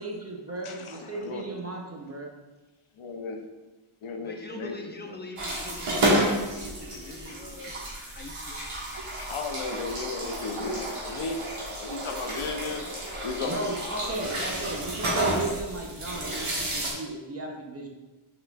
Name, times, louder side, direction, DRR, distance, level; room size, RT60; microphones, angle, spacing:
voice 1, 0.0-2.4 13.5-17.9, right 2 dB, 30° right, 0 dB, 0.7 m, -35 dB
voice 2, 0.6-1.5 3.0-3.4 4.0-5.2 8.6-11.4 11.8-12.8 13.2-14.4, left 4 dB, 80° left, 4 dB, 0.7 m, -35 dB
voice 3, 4.2-7.8 8.1-8.7, left 2 dB, 20° left, 3 dB, 0.5 m, -43 dB
sound 1, 5.4-16.9, right 1 dB, 85° right, 1.2 m, -31 dB
5.5 x 3.9 x 2.3 m, 1.1 s
wide cardioid pair, 90°, 50 cm